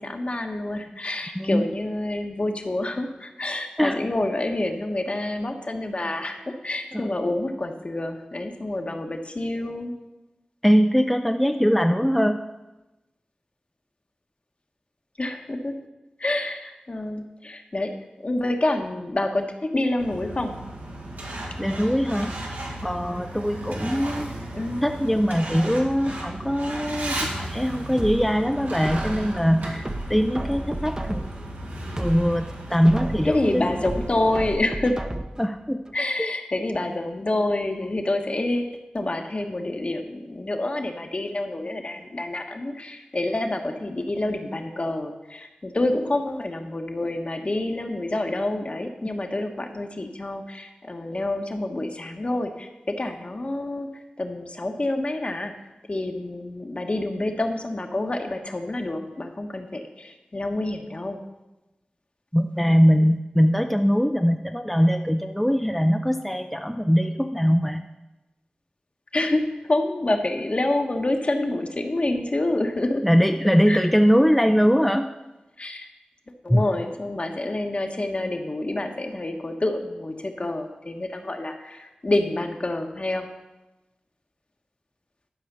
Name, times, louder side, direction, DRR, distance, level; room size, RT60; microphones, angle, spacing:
voice 1, 0.0-9.9 15.2-15.7 16.2-17.9 18.2-20.6 24.5-24.8 33.2-35.0 35.9-53.9 54.2-55.5 55.9-61.2 69.1-73.0 73.7-73.8 75.6-75.9 76.4-83.3, left 2 dB, 45° left, 4 dB, 1.2 m, -27 dB
voice 2, 1.4-1.7 3.8-4.0 6.9-7.1 10.6-12.4 21.6-22.3 22.8-24.3 24.8-31.3 32.0-33.7 35.4-35.8 36.2-36.3 62.3-67.9 73.0-75.1 76.5-76.7, equal, 5° left, 5 dB, 0.5 m, -21 dB
Truck, 20.0-34.5, right 1 dB, 90° right, 1.9 m, -35 dB
sound 1, 28.0-29.4 29.9-31.5 31.9-33.4 33.9-35.5 35.9-36.0, right 1 dB, 25° right, 0.8 m, -33 dB
11.5 x 4.9 x 6.8 m, 1.0 s
wide cardioid pair, 55°, 3 cm